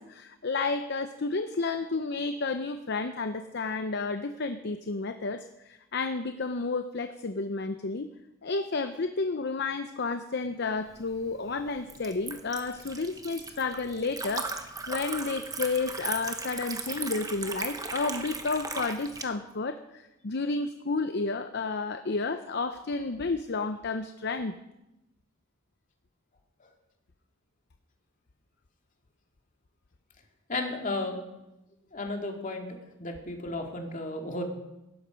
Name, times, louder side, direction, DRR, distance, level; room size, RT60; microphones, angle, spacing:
voice 1, 0.0-8.1 8.4-24.5, left 3 dB, 55° left, 8 dB, 0.7 m, -31 dB
Liquid, 10.9-19.2, right 4 dB, 15° right, 1.0 m, -37 dB
voice 2, 30.5-31.2 31.9-34.4, left 2 dB, 40° left, 3 dB, 2.3 m, -34 dB
17.0 x 12.5 x 5.2 m, 0.93 s
head